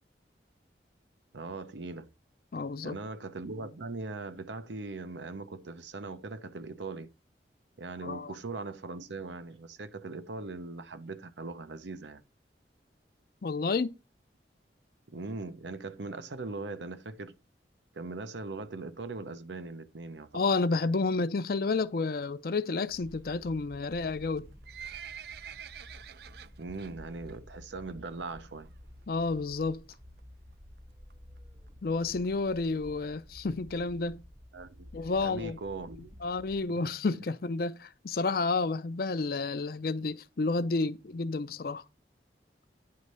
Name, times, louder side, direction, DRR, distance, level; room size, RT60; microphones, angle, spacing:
voice 1, 1.3-2.1 2.8-7.1 7.8-12.2 15.1-17.3 17.9-20.4 26.6-28.7 34.5-34.9 35.2-36.2 36.8-37.2, right 3 dB, 90° right, 0.8 m, -40 dB
voice 2, 2.5-3.0 8.0-8.3 13.4-14.0 20.3-24.5 29.1-29.8 31.8-34.2 34.9-35.6 36.2-41.8, left 3 dB, 55° left, 0.5 m, -30 dB
sound 1, 22.9-36.6, left 1 dB, 15° right, 0.7 m, -52 dB
Livestock farm animals working animals, 24.3-26.9 27.3-27.6 27.9-28.0 28.7-28.8 29.0-29.1 29.3-29.4 29.9-30.2 30.8-30.9 31.1-31.2 31.4-31.5 31.7-31.8 32.2-32.3 32.8-32.9 33.4-33.5, right 8 dB, 60° right, 0.3 m, -45 dB
9.5 x 3.2 x 6.6 m
head